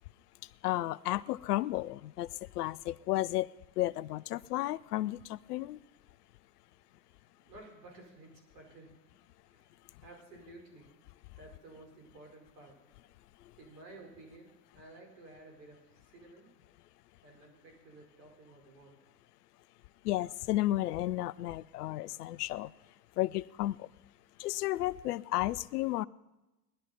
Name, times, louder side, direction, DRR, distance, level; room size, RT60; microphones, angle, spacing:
voice 1, 0.6-2.3 2.6-3.5 3.8-5.8 20.0-22.7 23.2-23.9 24.4-26.1, left 16 dB, 65° left, 21 dB, 0.6 m, -33 dB
voice 2, 6.7-10.9 11.3-13.3 13.5-16.5 17.2-19.0, right 2 dB, 70° right, 1 dB, 4.8 m, -54 dB
19.5 x 11.5 x 4.3 m, 1.0 s
hypercardioid pair, 85°, 50 cm